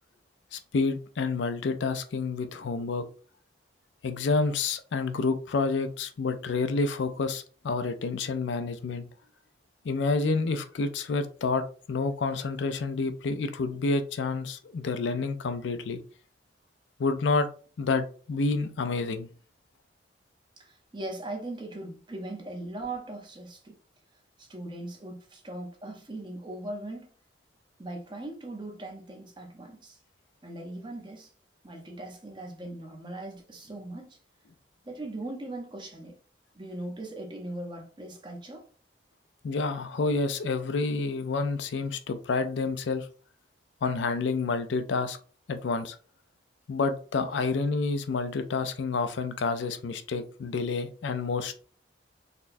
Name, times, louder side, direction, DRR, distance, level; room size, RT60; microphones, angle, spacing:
voice 1, 0.5-3.0 4.0-9.1 9.8-16.0 17.0-17.5 17.8-19.3 39.4-43.1 43.8-45.2 45.5-46.0 46.7-51.6, left 4 dB, 85° left, 0.4 m, -29 dB
voice 2, 20.6-23.8 24.4-27.1 27.8-30.0 30.4-31.3 31.6-34.2 34.9-36.2 36.5-38.7, right 2 dB, 25° right, 0.7 m, -39 dB
4.1 x 2.1 x 2.6 m
head